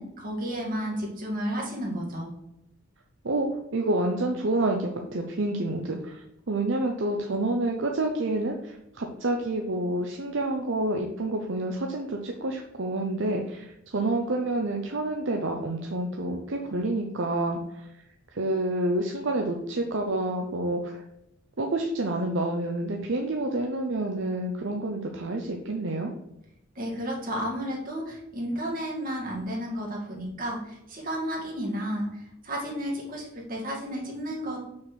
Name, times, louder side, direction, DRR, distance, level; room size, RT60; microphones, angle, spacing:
voice 1, 0.0-2.3 26.8-34.6, equal, 45° right, -2 dB, 2.2 m, -32 dB
voice 2, 3.7-17.9 18.3-21.0 21.6-26.1, right 2 dB, 65° right, 2 dB, 0.8 m, -28 dB
6.1 x 4.2 x 6.4 m, 0.83 s
head